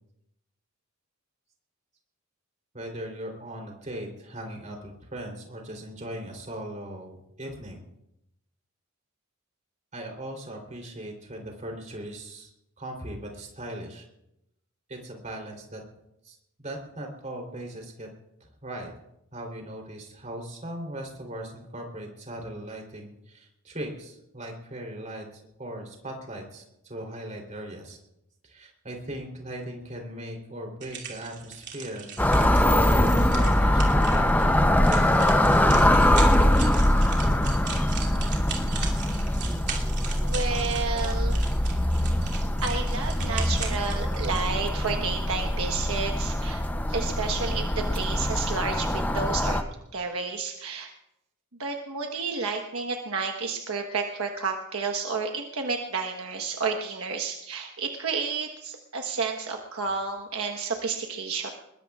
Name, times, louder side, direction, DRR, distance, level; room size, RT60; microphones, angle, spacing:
voice 1, 2.7-7.8 9.9-12.5 12.8-14.0 14.9-15.8 16.2-18.1 18.4-18.9 19.3-25.2 25.6-28.0 28.4-32.1 32.4-36.5, right 1 dB, 35° right, 1 dB, 3.4 m, -39 dB
sound 1, 30.8-44.5, right 6 dB, 50° right, 2.8 m, -39 dB
sound 2, 32.2-49.6, left 1 dB, 10° left, 0.7 m, -23 dB
voice 2, 40.2-41.4 42.6-46.6 46.9-49.6 49.9-50.9 51.6-61.5, right 4 dB, 70° right, 3 dB, 1.3 m, -31 dB
21.5 x 21.0 x 2.4 m, 0.83 s
head